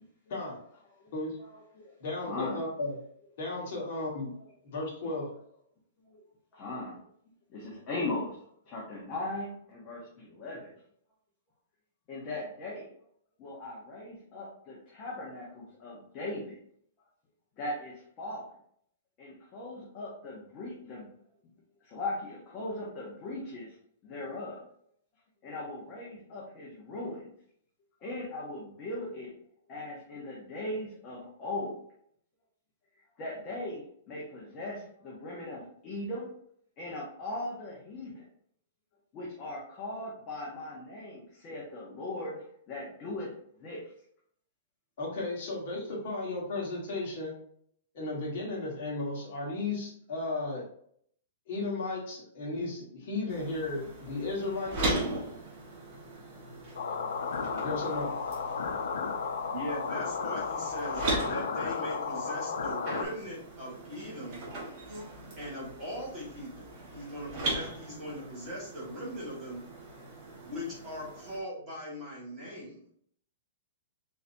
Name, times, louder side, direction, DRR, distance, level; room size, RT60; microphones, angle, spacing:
voice 1, 1.4-2.6 6.1-6.2 6.5-7.0 7.5-8.4 8.7-10.7 12.1-12.9 13.4-16.6 17.6-18.4 19.2-21.1 21.9-23.7 24.0-24.6 25.4-27.3 28.0-29.3 29.7-31.8 33.2-36.3 36.8-38.2 39.1-42.4 42.7-43.3 43.6-43.8, left 2 dB, 20° left, -5 dB, 0.9 m, -39 dB
voice 2, 2.0-2.9 3.4-4.3 4.7-5.3 45.0-47.3 47.9-50.6 51.5-54.9 57.6-58.1, left 2 dB, 45° left, -3 dB, 1.6 m, -34 dB
sound 1, 53.3-71.4, right 2 dB, 30° right, 1.3 m, -39 dB
sound 2, 56.8-63.0, left 5 dB, 80° left, 0.6 m, -33 dB
voice 3, 59.5-61.0 61.3-64.4 65.4-69.6 70.4-72.9, equal, 15° right, -8 dB, 1.8 m, -40 dB
4.1 x 3.8 x 2.7 m, 0.65 s
hypercardioid pair, 175°, 0 cm